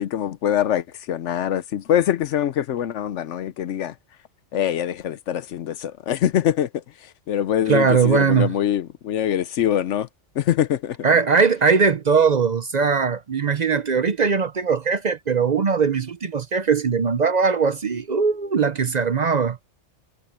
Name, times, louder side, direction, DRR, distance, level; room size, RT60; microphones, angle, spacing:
voice 1, 0.0-3.9 4.5-6.8 7.3-10.1 10.4-11.1, left 10 dB, 75° left, 1.0 m, -23 dB
voice 2, 7.7-8.5 11.0-19.6, right 5 dB, 45° right, 0.6 m, -20 dB
omnidirectional pair, 1.3 m